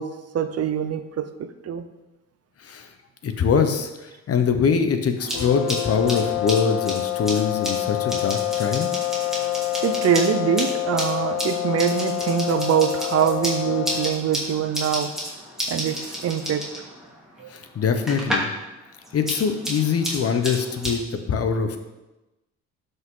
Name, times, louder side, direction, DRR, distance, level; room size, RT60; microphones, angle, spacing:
voice 1, 0.0-1.9 9.8-15.2 15.7-16.7 17.4-17.5, right 8 dB, 55° right, 10 dB, 0.7 m, -24 dB
voice 2, 3.2-3.9 4.3-8.9 17.5-18.5 19.1-21.0 21.3-21.8, left 6 dB, 50° left, 7 dB, 1.1 m, -23 dB
sound 1, 5.2-18.6 18.9-20.9, equal, ahead, 3.0 m, -32 dB
sound 2, 5.3-14.3, left 16 dB, 75° left, 0.6 m, -27 dB
12.0 x 5.5 x 3.9 m, 1.0 s
cardioid pair, 90°, 30 cm